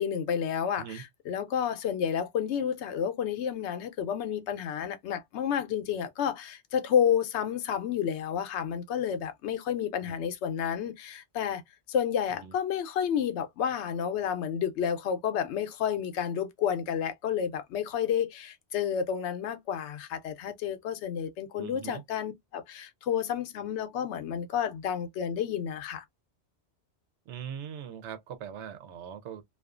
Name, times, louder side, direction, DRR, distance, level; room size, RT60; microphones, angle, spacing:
voice 1, 0.0-11.6 11.9-26.0, left 8 dB, 85° left, 0.9 m, -30 dB
voice 2, 21.6-22.0 27.3-29.4, right 8 dB, 85° right, 0.9 m, -41 dB
2.4 x 2.3 x 2.3 m
omnidirectional pair, 1.1 m